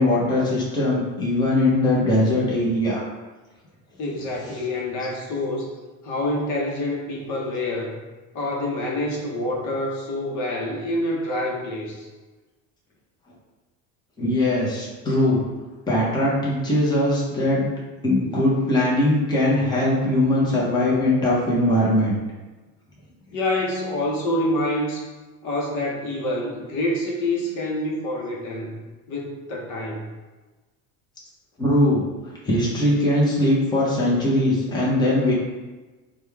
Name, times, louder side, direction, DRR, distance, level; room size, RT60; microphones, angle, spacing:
voice 1, 0.0-3.0 14.2-15.4 15.9-17.7 18.0-22.2 31.6-32.0 32.4-35.3, left 1 dB, 10° left, -6 dB, 0.8 m, -20 dB
voice 2, 4.0-5.8 6.0-7.9 8.3-12.1 23.3-25.1 25.4-28.8 29.1-30.0, left 1 dB, 55° left, -2 dB, 0.9 m, -27 dB
5.0 x 2.3 x 3.3 m, 1.2 s
cardioid pair, 145°, 37 cm